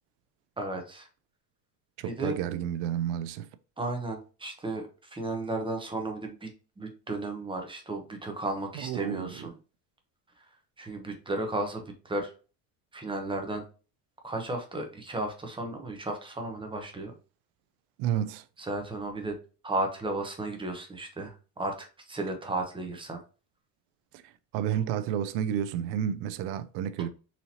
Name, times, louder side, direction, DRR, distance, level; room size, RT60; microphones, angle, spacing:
voice 1, 0.6-1.1 2.0-2.4 3.8-6.5 6.8-9.6 10.4-10.5 10.8-12.3 12.9-13.6 14.2-17.1 18.6-19.4 19.6-23.2, right 2 dB, 10° right, 0.7 m, -34 dB
voice 2, 2.0-3.5 8.8-9.3 18.0-18.4 24.1-24.2 24.5-27.1, right 10 dB, 80° right, 0.6 m, -30 dB
4.2 x 2.8 x 2.8 m
cardioid pair, 130°, 46 cm